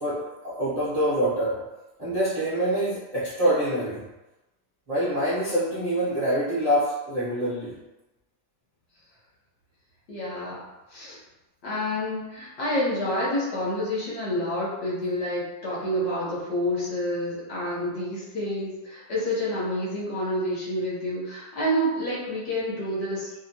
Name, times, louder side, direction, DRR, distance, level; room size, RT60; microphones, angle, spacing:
voice 1, 0.0-1.6 2.0-4.0 4.9-7.7, right 1 dB, 65° right, -11 dB, 0.3 m, -25 dB
voice 2, 10.1-11.2 11.6-23.3, equal, 50° left, -6 dB, 0.8 m, -28 dB
2.7 x 2.2 x 2.7 m, 1.0 s
omnidirectional pair, 1.8 m